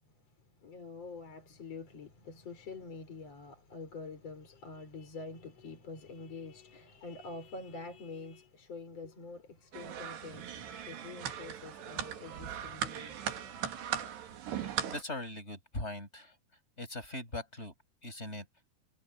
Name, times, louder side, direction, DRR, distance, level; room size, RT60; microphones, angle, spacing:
voice 1, 0.0-13.5, left 3 dB, 35° left, 6.3 m, -46 dB
sound 1, 9.7-15.0, right 9 dB, 75° right, 4.3 m, -39 dB
voice 2, 14.6-16.3 16.8-17.7 18.0-18.5, left 2 dB, 15° left, 7.2 m, -41 dB
omnidirectional pair, 4.8 m